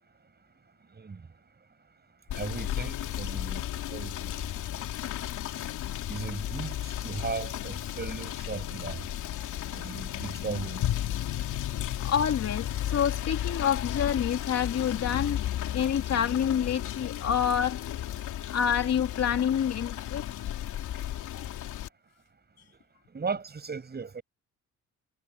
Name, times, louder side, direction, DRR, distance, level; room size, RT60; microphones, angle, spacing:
Rain / Motor vehicle (road), 2.3-21.9, left 12 dB, 80° left, 2.9 m, -34 dB
voice 1, 2.3-4.4 6.1-6.8 7.0-9.0 9.7-10.9 23.1-24.2, right 5 dB, 35° right, 7.4 m, -36 dB
voice 2, 12.0-17.8 18.5-20.2, left 8 dB, 55° left, 2.7 m, -27 dB
cardioid pair, 90°, 30 cm